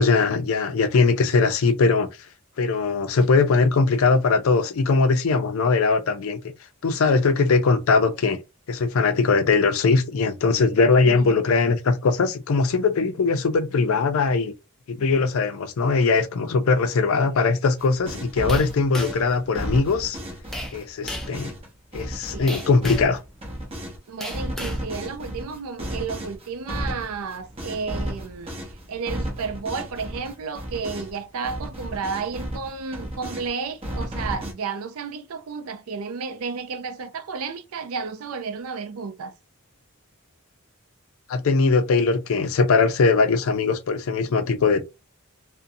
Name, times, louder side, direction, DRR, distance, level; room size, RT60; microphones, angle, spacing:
voice 1, 0.0-2.1 2.6-6.4 6.8-8.4 8.7-14.5 14.9-20.2 20.7-21.5 21.9-23.2 41.3-44.8, left 4 dB, 65° left, 0.4 m, -20 dB
voice 2, 10.9-11.4 17.2-17.3 22.3-22.7 24.1-28.5 28.9-39.3, right 5 dB, 70° right, 0.4 m, -32 dB
sound 1, 17.8-24.0 24.3-31.2 31.4-33.5 33.8-34.5, equal, 25° right, 0.7 m, -33 dB
sound 2, 18.5-19.3 20.5-20.8 21.1-21.4 22.5-23.2 24.2-24.8, left 1 dB, ahead, 0.4 m, -35 dB
2.5 x 2.1 x 2.6 m
head